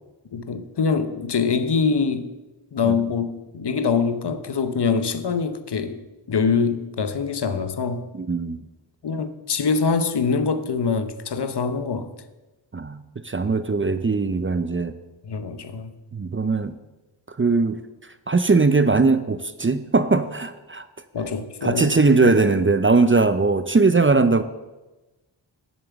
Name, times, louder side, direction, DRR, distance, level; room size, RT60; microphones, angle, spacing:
voice 1, 0.3-2.3 2.7-8.1 9.0-12.1 15.2-16.0 21.1-22.0 22.2-22.6, left 5 dB, 60° left, 11 dB, 0.9 m, -24 dB
voice 2, 8.1-8.6 12.7-14.9 16.1-16.7 17.4-17.8 18.3-20.8 21.6-24.4, right 3 dB, 30° right, 11 dB, 0.5 m, -20 dB
8.2 x 7.4 x 7.0 m, 1.1 s
wide cardioid pair, 95°, 45 cm